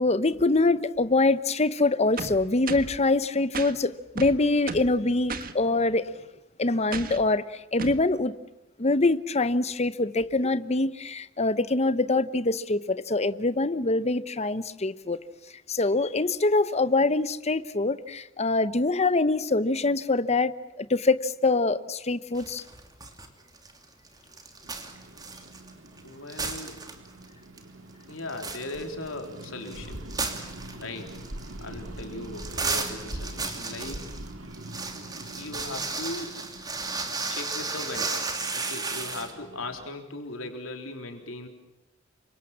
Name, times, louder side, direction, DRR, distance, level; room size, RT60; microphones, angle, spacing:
voice 1, 0.0-6.0 6.6-8.3 8.8-15.2 15.7-20.5 20.8-22.6, left 2 dB, 35° left, 1.0 m, -24 dB
sound 1, 2.2-3.0 3.5-3.7 4.2-4.9 5.3-5.5 6.9-7.2 7.8-8.0, right 4 dB, 45° right, 1.6 m, -34 dB
sound 2, 22.3-23.3 23.6-26.0 26.3-27.3 27.6-27.7 28.1-39.3, right 4 dB, 20° right, 2.9 m, -34 dB
sound 3, 24.6-39.9, right 1 dB, 80° right, 2.1 m, -44 dB
voice 2, 26.0-26.8 28.1-30.1 30.8-31.2 31.6-34.1 35.4-36.4 37.2-41.5, left 2 dB, 85° left, 3.8 m, -38 dB
28.5 x 25.0 x 7.4 m
head